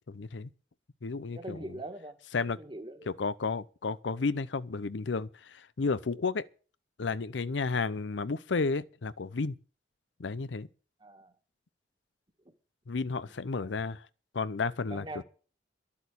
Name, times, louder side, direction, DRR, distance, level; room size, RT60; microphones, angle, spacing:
voice 1, 0.1-0.5 1.0-1.8 2.3-2.6 3.1-6.5 7.0-9.5 10.2-10.7 12.9-14.0 14.3-15.2, left 4 dB, 85° left, 0.6 m, -32 dB
voice 2, 1.3-2.2 2.6-3.2 11.0-11.3 13.5-13.8 14.9-15.2, right 2 dB, 25° right, 1.7 m, -42 dB
11.5 x 8.5 x 8.4 m
head